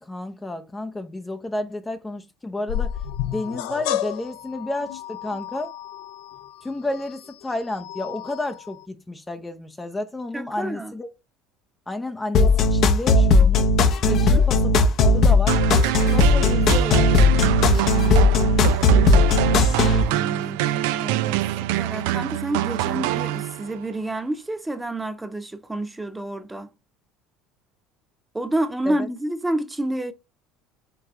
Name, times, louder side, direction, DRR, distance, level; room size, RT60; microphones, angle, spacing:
voice 1, 0.0-3.0 3.3-5.7 6.6-11.1 11.9-13.6 14.0-14.7 15.0-15.6 16.1-17.5 28.9-29.1, left 2 dB, 15° left, 0.6 m, -31 dB
sound 1, 2.7-8.9, left 11 dB, 75° left, 0.5 m, -32 dB
voice 2, 10.3-10.9 14.0-14.4 20.0-21.4 21.7-26.7 28.3-30.1, right 1 dB, 10° right, 0.9 m, -29 dB
sound 2, 12.3-20.0, left 2 dB, 55° left, 0.8 m, -17 dB
sound 3, 15.5-23.8, right 15 dB, 75° right, 0.3 m, -25 dB
4.7 x 3.6 x 3.1 m
hypercardioid pair, 80°, 0 cm